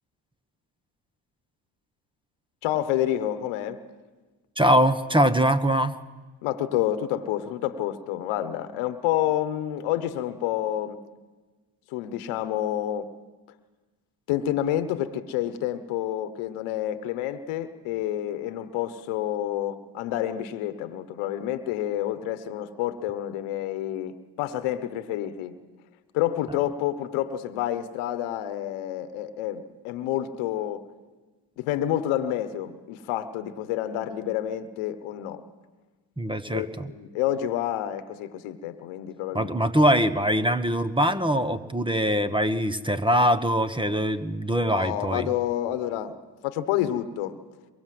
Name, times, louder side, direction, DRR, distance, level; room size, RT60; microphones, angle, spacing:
voice 1, 2.6-3.8 6.4-11.0 11.9-13.1 14.3-25.6 26.1-30.9 31.6-35.4 36.5-39.5 44.6-47.4, left 12 dB, 85° left, 11 dB, 1.3 m, -29 dB
voice 2, 4.6-5.9 36.2-36.9 39.3-45.3, equal, 10° right, 11 dB, 1.4 m, -23 dB
23.0 x 22.0 x 7.8 m, 1.3 s
supercardioid pair, 60°, 48 cm